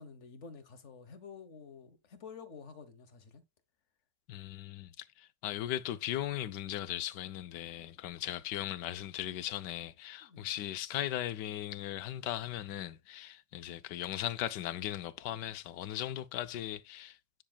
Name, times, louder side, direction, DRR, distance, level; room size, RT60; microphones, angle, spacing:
voice 1, 0.0-3.4 10.2-10.5, left 5 dB, 45° left, 1.3 m, -50 dB
voice 2, 4.3-17.2, left 12 dB, 80° left, 1.3 m, -38 dB
10.0 x 6.2 x 2.3 m
omnidirectional pair, 1.8 m